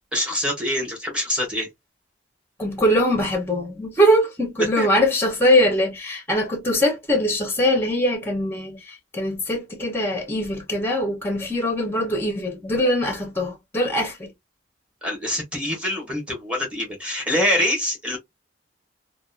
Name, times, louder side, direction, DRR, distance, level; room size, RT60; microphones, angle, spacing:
voice 1, 0.1-1.7 4.8-4.9 15.0-18.2, left 1 dB, 5° right, 1.0 m, -25 dB
voice 2, 2.6-14.3, equal, 10° left, 0.7 m, -22 dB
2.7 x 2.2 x 2.3 m
head